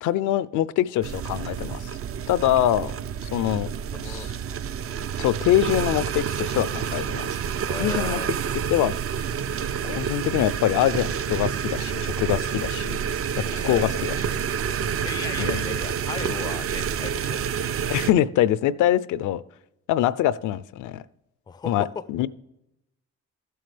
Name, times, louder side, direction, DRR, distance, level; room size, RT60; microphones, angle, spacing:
voice 1, 0.0-1.9 2.3-2.9 3.3-3.7 4.0-4.3 5.2-7.3 7.8-8.2 8.7-8.9 9.8-13.0 13.4-14.4 15.4-15.6 17.9-19.4 19.9-21.0 21.6-22.3, left 12 dB, 80° left, 18 dB, 0.5 m, -24 dB
sound 1, 1.0-18.1, right 8 dB, 50° right, 0.4 m, -28 dB
voice 2, 3.9-4.3 7.7-8.6 13.5-14.5 15.0-17.4 21.5-22.0, left 6 dB, 15° left, 16 dB, 0.3 m, -36 dB
13.0 x 7.8 x 3.3 m, 0.89 s
cardioid pair, 90°, 30 cm